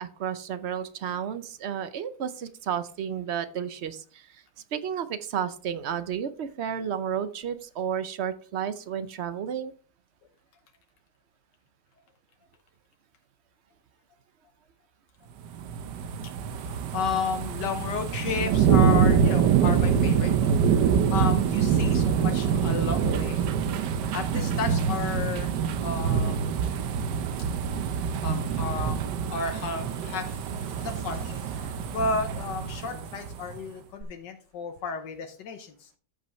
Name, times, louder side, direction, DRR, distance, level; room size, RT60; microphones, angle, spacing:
voice 1, 0.0-4.4 4.7-9.7, right 8 dB, 60° right, 12 dB, 0.7 m, -32 dB
sound 1, 15.4-33.6 34.0-34.1, right 7 dB, 80° right, 1.4 m, -25 dB
voice 2, 16.6-23.5 23.8-25.5 25.8-26.5 28.2-35.9, left 5 dB, 85° left, 5 dB, 1.6 m, -33 dB
14.0 x 5.5 x 3.1 m, 0.41 s
omnidirectional pair, 1.8 m